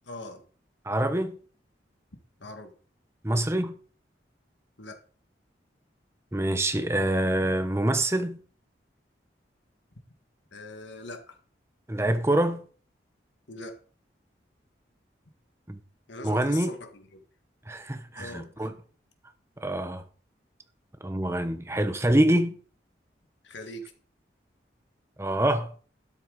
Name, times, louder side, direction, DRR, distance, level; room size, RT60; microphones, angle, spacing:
voice 1, 0.0-0.4 2.4-2.7 4.8-5.0 10.5-11.4 13.5-13.8 16.1-17.2 18.2-18.7 23.4-23.9, left 2 dB, 85° left, 1.8 m, -41 dB
voice 2, 0.8-1.4 3.2-3.8 6.3-8.4 11.9-12.6 15.7-15.8 16.2-16.7 17.7-18.7 19.6-20.0 21.0-22.5 25.2-25.7, right 1 dB, 15° right, 0.9 m, -25 dB
12.0 x 8.1 x 4.0 m
head